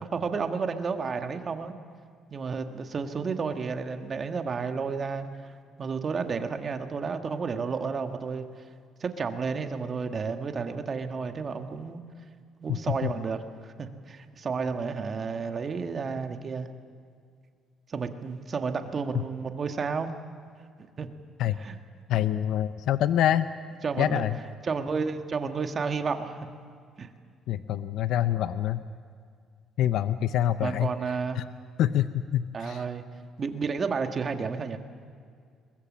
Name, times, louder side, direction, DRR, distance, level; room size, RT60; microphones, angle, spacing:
voice 1, 0.1-1.7 2.3-5.5 5.8-8.5 9.0-12.0 12.6-16.7 17.9-20.1 21.0-21.1 21.6-21.8 23.8-24.2 24.6-26.4 27.0-27.1 30.6-31.4 32.5-33.0 33.4-34.8, right 5 dB, 40° right, 6 dB, 1.7 m, -31 dB
voice 2, 22.1-23.5 24.0-24.4 27.5-28.8 29.8-30.9 31.4-31.5 31.8-32.8, left 11 dB, 75° left, 12 dB, 0.6 m, -26 dB
22.0 x 21.0 x 7.4 m, 2.2 s
cardioid pair, 100°, 0 cm